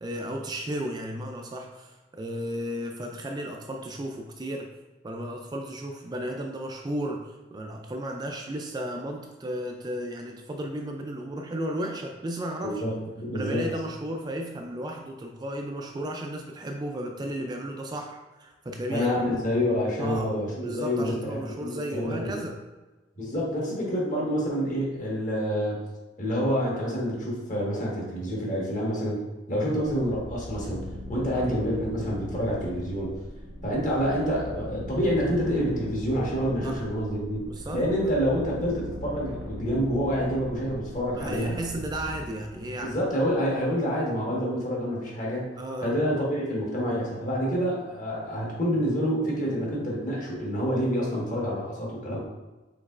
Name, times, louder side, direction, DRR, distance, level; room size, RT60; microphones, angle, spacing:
voice 1, 0.0-4.7 5.0-12.8 13.3-19.1 20.0-20.3 20.6-22.5 31.3-31.5 36.6-36.8 37.4-38.2 41.2-43.0 45.6-45.9, right 1 dB, 20° right, 2 dB, 0.3 m, -34 dB
voice 2, 12.6-13.7 18.9-22.3 23.2-25.8 26.2-29.2 29.5-33.1 33.6-37.4 37.7-41.6 42.8-45.4 45.8-52.2, equal, 45° left, -4 dB, 1.4 m, -27 dB
sound 1, 29.8-44.1, left 1 dB, 90° right, 0.9 m, -40 dB
5.2 x 3.9 x 2.4 m, 1.2 s
head